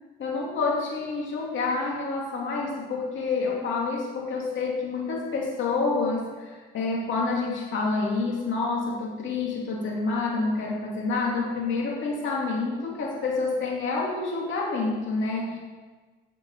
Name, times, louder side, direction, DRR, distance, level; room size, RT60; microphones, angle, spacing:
voice 1, 0.2-15.6, left 3 dB, 75° left, -3 dB, 2.7 m, -28 dB
9.2 x 6.7 x 6.7 m, 1.3 s
cardioid pair, 90°, 20 cm